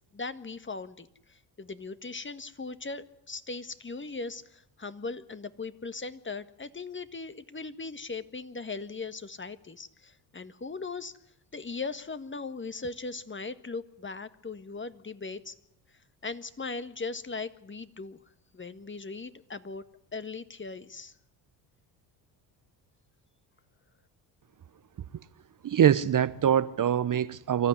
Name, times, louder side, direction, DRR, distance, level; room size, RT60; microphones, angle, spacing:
voice 1, 0.1-11.1 11.5-15.5 16.2-18.2 18.5-19.8 20.1-21.1, left 4 dB, 25° left, 1.7 m, -39 dB
voice 2, 25.6-27.7, right 9 dB, 40° right, 1.0 m, -24 dB
25.5 x 14.0 x 9.7 m
hypercardioid pair, 60°, 49 cm